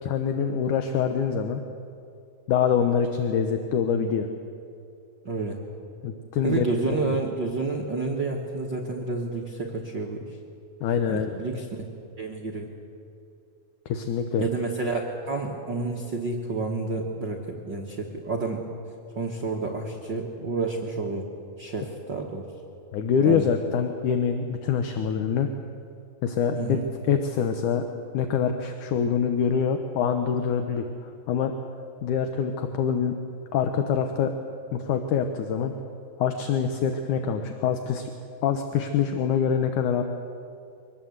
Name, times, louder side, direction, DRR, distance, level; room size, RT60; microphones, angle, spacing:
voice 1, 0.0-1.6 2.5-4.3 6.0-6.7 6.9-7.2 10.8-11.3 13.9-14.5 22.9-25.5 26.2-27.8 28.1-31.5 32.0-33.2 33.5-34.3 34.7-35.7 36.2-38.1 38.4-40.0, left 7 dB, 70° left, 6 dB, 2.1 m, -25 dB
voice 2, 5.2-5.6 6.4-10.3 11.1-11.7 12.2-12.7 14.4-18.6 19.1-21.3 21.6-22.5 23.2-23.5 26.5-26.9, right 3 dB, 55° right, -1 dB, 1.3 m, -29 dB
24.5 x 19.0 x 8.0 m, 2.5 s
omnidirectional pair, 4.4 m